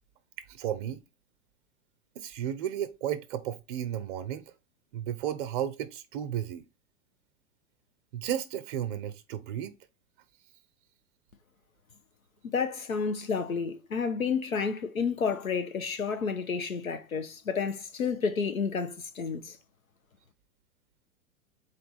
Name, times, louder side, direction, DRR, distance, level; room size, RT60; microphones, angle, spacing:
voice 1, 0.5-1.0 2.2-4.5 4.9-6.6 8.1-9.8, right 10 dB, 40° right, 0.5 m, -33 dB
voice 2, 12.4-19.6, left 5 dB, 85° left, 0.6 m, -30 dB
4.0 x 3.3 x 3.9 m
figure-of-eight pair, 100°, 40 cm